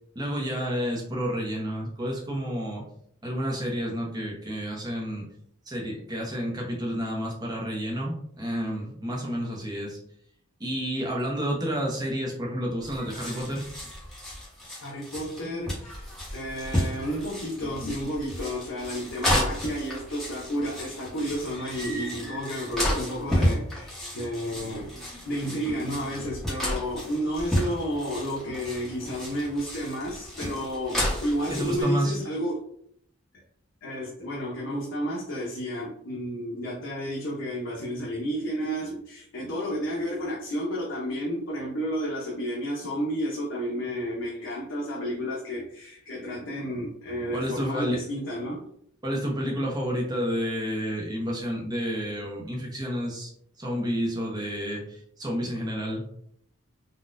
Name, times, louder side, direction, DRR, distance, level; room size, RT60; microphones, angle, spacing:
voice 1, 0.1-2.8 3.2-5.3 5.7-10.0 10.6-13.6 31.5-32.2 47.3-48.0 49.0-53.3 53.6-56.0, equal, 20° right, -1 dB, 0.7 m, -30 dB
sound 1, 12.8-31.8, equal, ahead, 1.0 m, -32 dB
voice 2, 14.8-24.9 25.2-32.6 33.8-48.6, equal, 65° left, -5 dB, 0.7 m, -31 dB
3.9 x 2.2 x 2.5 m, 0.69 s
head